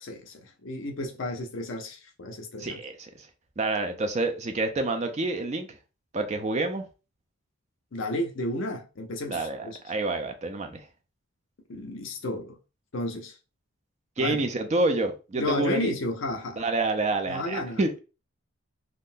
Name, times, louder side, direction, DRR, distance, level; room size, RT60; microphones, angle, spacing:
voice 1, 0.0-2.8 7.9-9.8 11.7-12.6 12.9-13.4 14.2-14.4 15.4-16.6 17.3-17.8, left 1 dB, 60° left, 0.5 m, -32 dB
voice 2, 2.6-3.3 3.6-5.7 6.1-6.8 9.3-10.9 14.2-15.9 16.6-17.9, right 2 dB, 30° right, 0.4 m, -28 dB
3.6 x 2.1 x 2.5 m
head